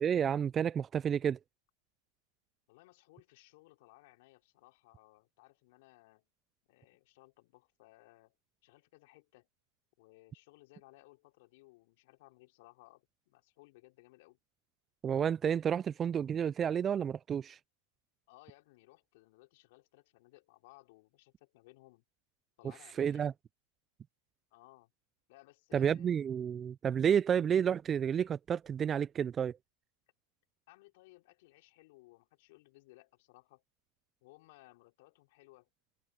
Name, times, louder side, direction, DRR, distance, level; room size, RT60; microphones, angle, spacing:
voice 1, 0.0-1.4 15.0-17.6 23.0-23.3 25.7-29.6, right 8 dB, 25° right, 0.4 m, -30 dB
voice 2, 2.7-6.3 6.7-8.4 8.6-9.5 10.0-14.4 18.3-22.0 22.6-23.3 24.5-24.9 25.3-26.1 30.7-33.6 34.2-35.7, left 21 dB, 55° left, 3.5 m, -61 dB
hypercardioid pair, 100°, 0 cm